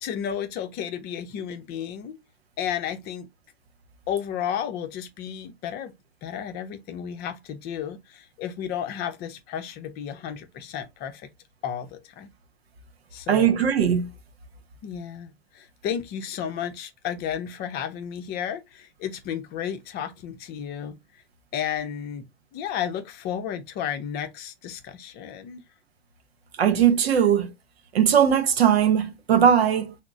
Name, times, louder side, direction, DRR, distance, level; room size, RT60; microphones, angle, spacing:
voice 1, 0.0-2.2 2.6-3.3 4.1-5.9 6.2-11.3 11.6-12.3 13.1-13.6 14.8-21.0 21.5-22.3 22.5-25.6, left 9 dB, 30° left, 0.7 m, -32 dB
voice 2, 13.3-14.1 26.6-27.5 27.9-29.9, right 8 dB, 65° right, 0.9 m, -19 dB
5.9 x 2.1 x 2.5 m
figure-of-eight pair, 95°, 33 cm